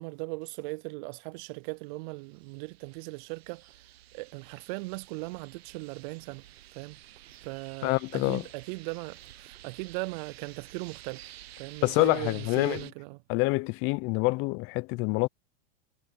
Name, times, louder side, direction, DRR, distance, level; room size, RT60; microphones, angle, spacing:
voice 1, 0.0-3.9 4.1-6.4 6.7-7.0 7.4-11.3 11.6-13.2, right 27 dB, 50° right, 0.6 m, -38 dB
sound 1, 1.9-12.9, right 13 dB, 80° right, 1.2 m, -51 dB
voice 2, 7.8-8.4 11.8-12.8 13.3-15.3, left 26 dB, 45° left, 0.7 m, -26 dB
hypercardioid pair, 110°, 31 cm